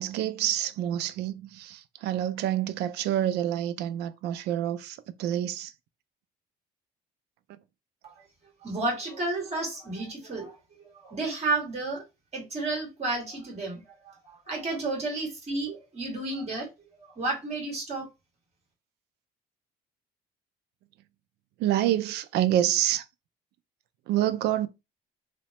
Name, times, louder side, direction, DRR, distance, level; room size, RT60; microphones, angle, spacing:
voice 1, 0.0-5.7 21.6-23.0 24.1-24.7, right 12 dB, 80° right, 0.4 m, -27 dB
voice 2, 8.6-12.0 12.3-16.7 17.2-18.1, right 2 dB, 40° right, 1.8 m, -32 dB
3.0 x 2.1 x 2.9 m
cardioid pair, 110°, 17 cm